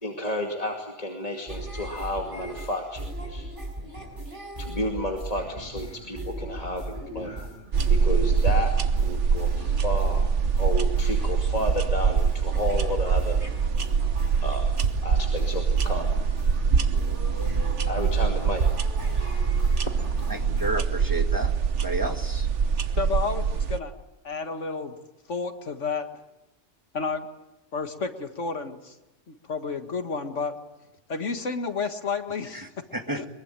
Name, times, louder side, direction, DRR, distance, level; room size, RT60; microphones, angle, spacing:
voice 1, 0.0-3.5 4.6-7.4 7.9-8.7 9.0-10.3 10.6-13.4 14.4-16.2 17.8-18.6 19.8-20.2, left 1 dB, 30° left, 1 dB, 2.5 m, -32 dB
sound 1, 1.5-20.7, right 1 dB, 45° right, 5.8 m, -38 dB
sound 2, 7.7-23.8, right 6 dB, 80° right, 1.4 m, -24 dB
voice 2, 20.3-21.5 21.8-22.5 32.5-33.2, right 2 dB, 15° right, 5 dB, 1.9 m, -31 dB
voice 3, 23.0-23.9 24.2-25.0 25.3-26.2 26.9-27.3 27.7-29.0 29.3-30.5 31.1-32.7 33.2-33.3, left 4 dB, 85° left, 7 dB, 2.1 m, -31 dB
23.0 x 22.5 x 9.1 m, 0.94 s
omnidirectional pair, 1.2 m